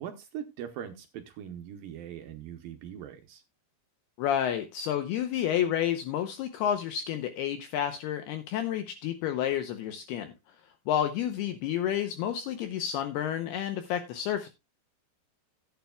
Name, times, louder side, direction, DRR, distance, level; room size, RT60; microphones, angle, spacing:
voice 1, 0.0-3.4, right 9 dB, 80° right, 2.1 m, -41 dB
voice 2, 4.2-10.3 10.9-14.5, left 10 dB, 75° left, 2.6 m, -30 dB
16.0 x 8.8 x 2.3 m
omnidirectional pair, 5.1 m